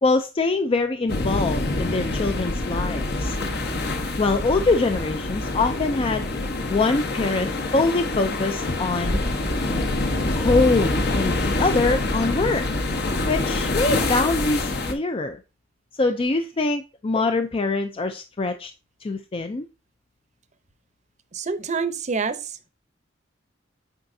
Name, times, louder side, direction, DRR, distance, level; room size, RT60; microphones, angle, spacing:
voice 1, 0.0-3.4 4.2-6.3 6.7-9.2 10.2-12.7 13.3-15.4 16.0-18.7 19.0-19.7, left 3 dB, 30° left, 0.4 m, -24 dB
sound 1, 1.1-14.9, left 2 dB, 60° left, 1.1 m, -26 dB
voice 2, 21.3-22.7, right 5 dB, 40° right, 0.7 m, -27 dB
8.1 x 4.8 x 2.6 m
head